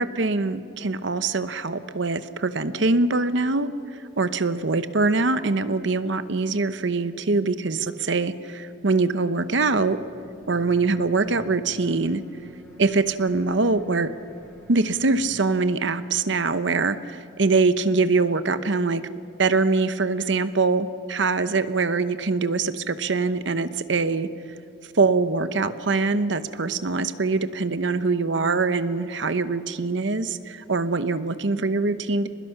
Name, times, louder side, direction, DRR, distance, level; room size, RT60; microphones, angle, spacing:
voice 1, 0.0-10.0 10.5-12.2 12.8-14.1 14.7-19.0 19.4-24.3 24.9-32.3, right 3 dB, 65° right, 12 dB, 0.8 m, -23 dB
sound 1, 9.5-15.4, equal, 5° left, 3.7 m, -48 dB
29.5 x 20.5 x 5.9 m, 2.4 s
head